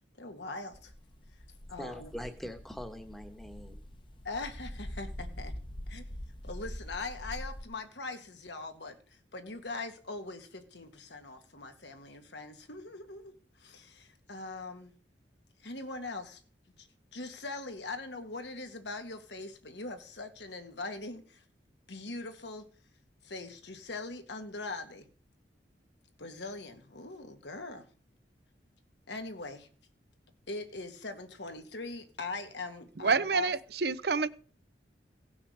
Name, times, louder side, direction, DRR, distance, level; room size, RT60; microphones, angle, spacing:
voice 1, 0.2-0.9 1.7-2.1 4.2-5.5 5.9-6.1 6.4-14.9 15.6-16.4 16.8-21.4 21.9-22.7 23.2-25.1 26.2-27.9 29.1-29.7 30.5-33.5, left 3 dB, 75° left, 1.7 m, -41 dB
sound 1, 0.7-7.6, equal, 25° left, 1.0 m, -44 dB
voice 2, 1.8-3.8, equal, ahead, 1.2 m, -42 dB
voice 3, 33.0-34.3, right 5 dB, 60° right, 0.6 m, -28 dB
17.0 x 6.1 x 6.5 m
head